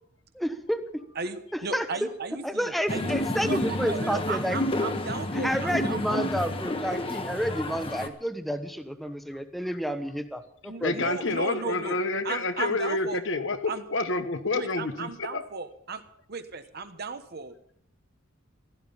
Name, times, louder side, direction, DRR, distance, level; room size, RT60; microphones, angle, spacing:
voice 1, 0.4-1.0 1.5-1.9 2.4-4.6 5.3-11.3, equal, ahead, 8 dB, 1.1 m, -30 dB
voice 2, 1.1-3.1 3.4-6.3 10.7-12.0 12.2-13.2 13.7-13.8 14.5-16.0 16.3-17.5, right 4 dB, 50° right, 9 dB, 1.3 m, -35 dB
sound 1, 2.9-8.1, left 1 dB, 25° left, 1.3 m, -30 dB
voice 3, 10.8-15.5, left 3 dB, 65° left, 9 dB, 1.3 m, -29 dB
16.0 x 13.0 x 5.6 m, 0.70 s
head